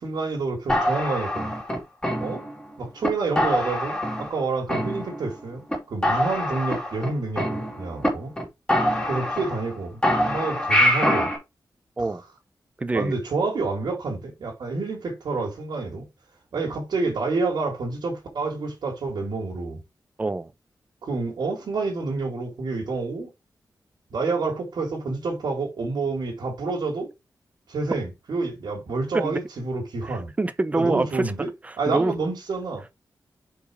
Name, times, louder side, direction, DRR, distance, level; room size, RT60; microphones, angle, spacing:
voice 1, 0.0-1.5 2.2-2.4 2.8-8.3 9.1-11.3 12.9-16.1 16.5-19.8 21.0-23.3 24.1-27.1 27.7-30.3 30.7-31.5 31.8-32.8, right 3 dB, 90° right, 2.6 m, -28 dB
sound 1, 0.7-2.6 3.0-3.1 3.4-4.4 4.7-5.4 5.7-5.8 6.0-8.1 8.4-8.5 8.7-9.7 10.0-11.4, equal, 10° left, 2.3 m, -24 dB
voice 2, 12.8-13.1 20.2-20.5 29.1-29.4 30.1-31.3 31.6-32.1, right 2 dB, 20° right, 0.6 m, -25 dB
5.1 x 4.8 x 4.8 m
wide cardioid pair, 175°, 7 cm